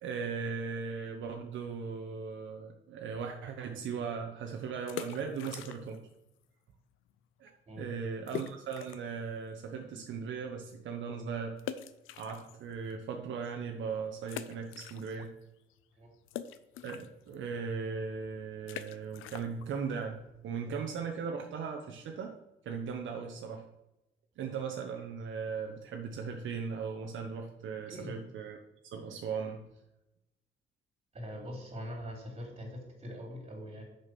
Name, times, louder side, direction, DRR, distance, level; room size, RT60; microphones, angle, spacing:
voice 1, 0.0-6.0 7.4-11.5 12.2-15.3 16.8-22.3 22.6-23.6 24.4-28.6 28.8-29.6, right 5 dB, 75° right, 3 dB, 0.9 m, -38 dB
sound 1, 4.9-6.1 6.4-6.5 7.1-7.2 7.4-7.5 8.3-9.2 9.7-9.8 11.6-12.9 13.4-13.5 14.2-15.4 15.7-21.2, left 10 dB, 90° left, 0.5 m, -44 dB
voice 2, 31.1-33.8, equal, 30° right, 1 dB, 3.4 m, -43 dB
6.4 x 5.7 x 6.1 m, 0.92 s
cardioid pair, 90°, 20 cm